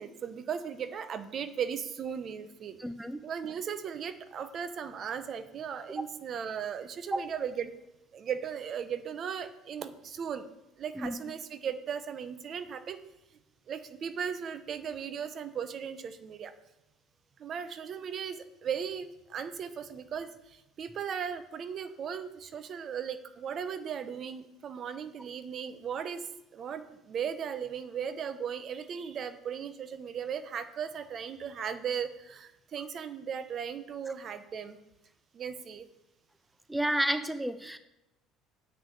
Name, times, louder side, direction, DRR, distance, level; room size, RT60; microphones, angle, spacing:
voice 1, 0.0-2.8 3.2-7.7 8.1-10.4 10.8-13.0 13.7-16.5 17.4-26.3 26.5-34.8 35.3-35.8, right 7 dB, 50° right, 11 dB, 1.0 m, -37 dB
voice 2, 2.8-3.2 7.1-7.2 11.0-11.1 36.7-37.8, right 1 dB, 5° right, 11 dB, 0.6 m, -31 dB
8.0 x 6.4 x 8.2 m, 0.93 s
supercardioid pair, 85°, 0 cm